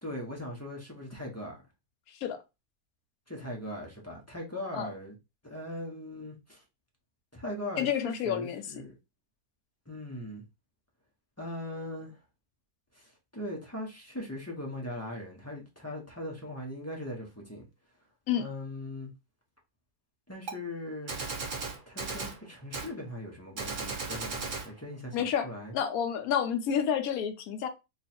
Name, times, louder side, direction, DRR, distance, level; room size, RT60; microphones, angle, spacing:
voice 1, 0.0-1.6 3.3-5.2 5.4-6.6 7.3-9.0 9.9-10.4 11.4-12.2 12.9-17.6 18.4-19.1 20.3-21.2 21.9-25.2 25.4-25.7, left 1 dB, 15° left, 0.6 m, -40 dB
voice 2, 7.8-8.6 18.3-18.4 25.1-25.5 25.7-27.7, left 8 dB, 70° left, 1.1 m, -29 dB
Gunshot gunfire, 20.5-20.6 21.1-22.4 22.7-22.9 23.6-24.7, right 4 dB, 45° right, 0.8 m, -36 dB
3.0 x 2.4 x 4.1 m
omnidirectional pair, 1.7 m